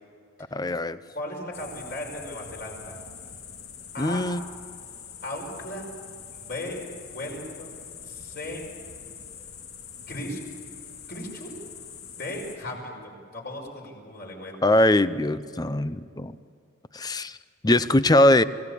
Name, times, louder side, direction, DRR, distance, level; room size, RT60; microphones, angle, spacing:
voice 1, 0.5-1.0 4.0-4.4 14.6-16.3 16.9-17.4 17.6-18.4, left 1 dB, 20° left, 14 dB, 0.6 m, -21 dB
voice 2, 1.1-3.0 3.9-4.2 5.2-5.9 6.3-6.8 7.1-7.8 8.0-8.6 10.1-10.4 11.1-11.5 12.2-14.6, left 1 dB, 45° left, 0 dB, 5.7 m, -36 dB
sound 1, 1.5-12.6, left 7 dB, 70° left, 2.1 m, -44 dB
27.0 x 17.5 x 8.4 m, 2.4 s
head